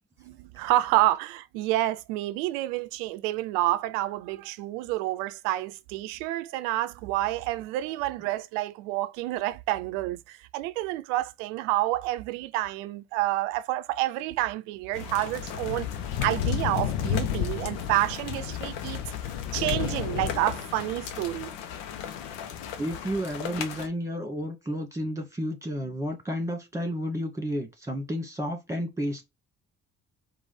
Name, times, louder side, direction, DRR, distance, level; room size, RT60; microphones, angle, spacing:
voice 1, 0.2-15.9 16.2-19.0 19.5-21.5, right 15 dB, 80° right, 0.6 m, -29 dB
sound 1, 14.9-23.9, left 9 dB, 80° left, 0.8 m, -32 dB
voice 2, 22.8-29.3, equal, 10° right, 2.1 m, -31 dB
4.7 x 2.5 x 4.1 m
hypercardioid pair, 50°, 38 cm